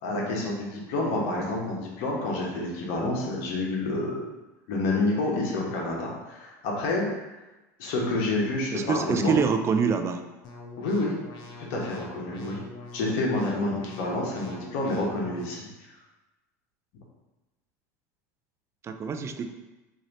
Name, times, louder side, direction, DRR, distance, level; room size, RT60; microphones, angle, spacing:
voice 1, 0.0-4.3 4.7-7.1 7.8-9.3 10.8-11.1 11.6-12.6 12.9-15.7, left 2 dB, 65° left, -2 dB, 1.1 m, -28 dB
voice 2, 8.7-10.2 18.8-19.5, right 6 dB, 30° right, 6 dB, 0.4 m, -25 dB
sound 1, 10.4-15.4, left 3 dB, 50° left, 0.6 m, -44 dB
3.1 x 2.7 x 4.0 m, 1.1 s
supercardioid pair, 105°, 9 cm